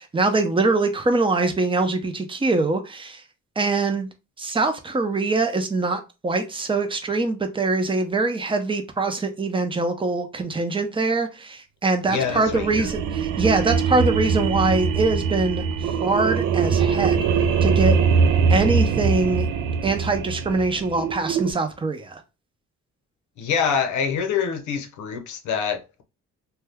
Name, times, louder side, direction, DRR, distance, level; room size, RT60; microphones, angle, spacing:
voice 1, 0.0-3.2 3.6-4.1 4.4-17.2 17.6-18.0 18.5-19.5 19.8-22.2, right 3 dB, 15° right, 0.6 m, -23 dB
voice 2, 12.1-12.9 23.4-26.0, left 6 dB, 75° left, 0.7 m, -25 dB
sound 1, 12.1-21.5, right 6 dB, 80° right, 0.5 m, -22 dB
2.7 x 2.2 x 3.4 m
cardioid pair, 90°, 30 cm